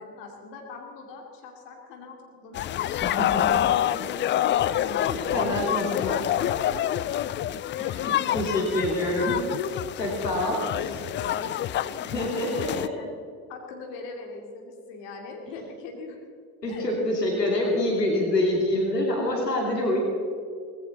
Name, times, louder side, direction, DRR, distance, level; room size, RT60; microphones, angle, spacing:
voice 1, 0.0-2.6 3.3-7.2 8.4-9.0 10.5-13.1 13.5-16.2 16.7-16.9, left 3 dB, 60° left, 1 dB, 2.8 m, -41 dB
sound 1, 2.5-12.9, left 12 dB, 25° left, 0.4 m, -27 dB
voice 2, 3.0-3.4 4.9-6.2 7.8-10.6 12.0-12.9 16.6-20.0, left 1 dB, 90° left, -1 dB, 2.9 m, -26 dB
19.0 x 16.5 x 4.1 m, 2.3 s
figure-of-eight pair, 60°, 48 cm